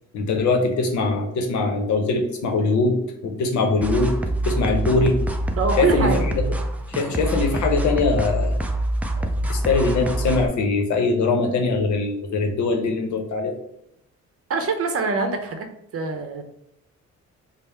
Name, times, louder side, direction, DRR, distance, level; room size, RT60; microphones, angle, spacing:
voice 1, 0.1-4.2 4.4-5.2 5.8-6.1 6.9-8.5 9.5-13.5, left 3 dB, 70° left, 4 dB, 0.8 m, -22 dB
sound 1, 3.8-10.5, right 1 dB, 5° right, 0.4 m, -25 dB
voice 2, 5.6-6.3 14.5-15.7 15.9-16.4, right 4 dB, 50° right, 5 dB, 0.7 m, -24 dB
3.4 x 2.0 x 4.2 m, 0.78 s
cardioid pair, 90°, 30 cm